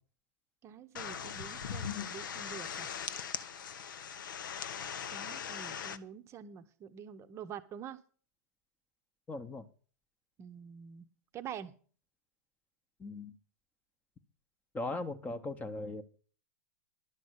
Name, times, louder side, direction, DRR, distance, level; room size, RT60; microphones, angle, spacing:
voice 1, 0.6-2.9 5.1-8.0 10.4-11.0 11.3-11.7, right 8 dB, 25° right, 9 dB, 0.7 m, -46 dB
sound 1, 1.0-6.0, left 8 dB, 85° left, 0.9 m, -40 dB
voice 2, 9.3-9.6 13.0-13.3 14.7-16.0, left 2 dB, 15° left, 14 dB, 0.8 m, -38 dB
11.5 x 5.3 x 7.9 m, 0.42 s
hypercardioid pair, 130°, 11 cm